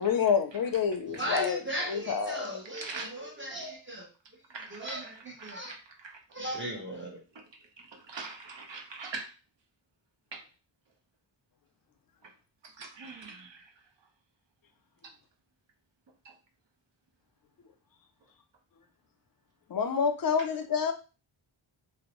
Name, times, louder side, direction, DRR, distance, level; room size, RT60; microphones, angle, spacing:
voice 1, 0.0-1.6 1.9-2.6 19.7-20.9, left 6 dB, 50° left, 7 dB, 0.5 m, -28 dB
voice 2, 1.1-4.1 4.7-5.7 6.3-7.2, equal, 25° right, 0 dB, 0.8 m, -36 dB
voice 3, 2.7-3.1 4.5-6.2 7.3-7.4 7.8-9.3 10.3-10.4 12.2-12.3 12.6-13.8 16.2-16.4, right 4 dB, 65° right, 3 dB, 0.7 m, -43 dB
2.5 x 2.0 x 3.0 m, 0.32 s
wide cardioid pair, 85°, 48 cm